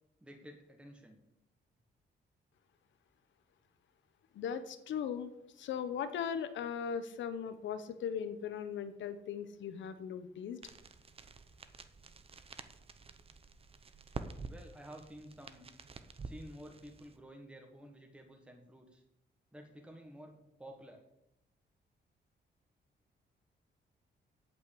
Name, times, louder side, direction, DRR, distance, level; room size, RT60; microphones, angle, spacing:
voice 1, 0.2-1.2 14.4-15.7 16.2-19.0 19.5-21.0, equal, 5° right, 2 dB, 1.5 m, -52 dB
voice 2, 4.3-5.3 5.6-10.6, left 7 dB, 85° left, 11 dB, 1.0 m, -38 dB
sound 1, 10.6-17.2, right 4 dB, 30° right, 0.9 m, -49 dB
8.9 x 8.0 x 8.5 m, 0.84 s
cardioid pair, 130°, 19 cm